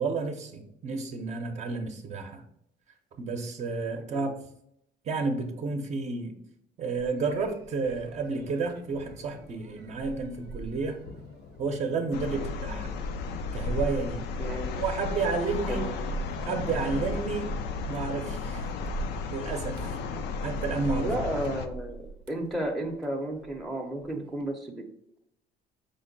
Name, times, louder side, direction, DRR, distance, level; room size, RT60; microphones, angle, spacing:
voice 1, 0.0-2.4 3.2-4.3 5.0-6.4 6.8-11.0 11.6-12.9 13.5-14.3 14.8-15.8 16.4-17.5 17.8-18.7 19.3-20.0 20.4-21.1, right 4 dB, 40° right, 4 dB, 0.6 m, -31 dB
sound 1, 7.0-23.7 24.0-24.5, right 4 dB, 85° right, 0.6 m, -44 dB
sound 2, 7.2-15.5, left 3 dB, 75° left, 0.9 m, -50 dB
sound 3, 12.1-21.7, left 4 dB, 90° left, 0.4 m, -34 dB
voice 2, 14.4-14.7 15.7-15.8 21.0-24.8, right 1 dB, ahead, -1 dB, 0.6 m, -33 dB
5.2 x 2.1 x 3.9 m, 0.76 s
cardioid pair, 110°, 17 cm